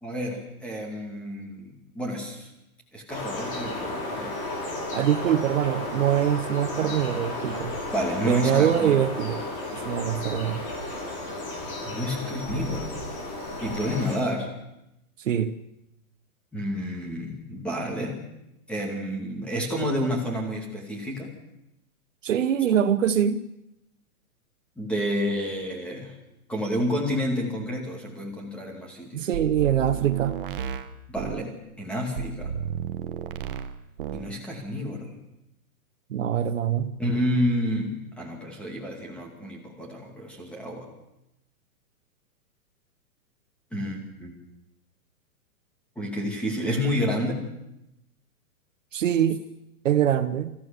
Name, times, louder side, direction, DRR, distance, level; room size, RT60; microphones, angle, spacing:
voice 1, 0.0-2.5 2.9-4.4 7.9-9.0 11.8-12.9 13.6-14.5 16.5-18.2 18.7-21.3 24.8-26.1 26.5-29.2 31.1-32.5 34.1-35.1 37.0-40.8 43.7-44.3 46.0-47.4, equal, ahead, 0 dB, 2.4 m, -30 dB
sound 1, 3.1-14.2, left 1 dB, 35° left, 5.8 m, -33 dB
voice 2, 4.9-7.7 8.3-9.4 9.7-10.6 15.2-15.5 22.2-23.4 29.1-30.4 36.1-36.9 48.9-49.4 49.8-50.5, right 10 dB, 60° right, 11 dB, 1.1 m, -24 dB
sound 2, 29.3-31.5 32.2-33.7 34.0-34.3, right 8 dB, 35° right, 1.0 m, -32 dB
25.5 x 15.0 x 6.8 m, 0.88 s
hypercardioid pair, 175°, 44 cm